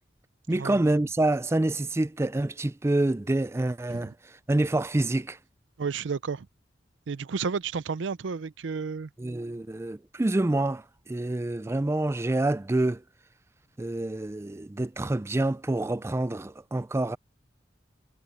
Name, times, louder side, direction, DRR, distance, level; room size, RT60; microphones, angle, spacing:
voice 1, 0.5-5.4 9.2-10.8 11.1-13.0 13.8-17.2, right 2 dB, 15° right, 0.4 m, -27 dB
voice 2, 5.8-6.5 7.1-9.1, right 5 dB, 80° right, 0.5 m, -32 dB
head